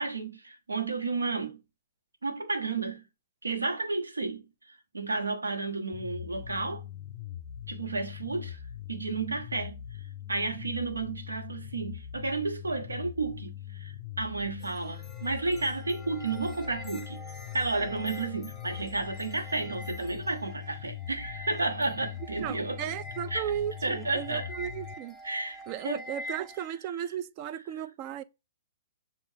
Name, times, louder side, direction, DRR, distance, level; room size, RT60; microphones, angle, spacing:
voice 1, 0.0-1.6 2.2-3.0 3.4-6.8 7.7-8.6 8.9-17.2 17.5-22.9 23.3-23.5 23.8-24.5 25.2-25.6 25.8-26.0 27.7-27.8, right 3 dB, 85° right, 1.1 m, -32 dB
sound 1, 5.9-24.9, left 11 dB, 50° left, 0.4 m, -42 dB
sound 2, 14.6-26.7, left 1 dB, 10° left, 1.1 m, -46 dB
voice 2, 22.4-25.2 25.7-28.2, right 10 dB, 35° right, 0.4 m, -35 dB
7.1 x 2.4 x 2.7 m
hypercardioid pair, 125°, 0 cm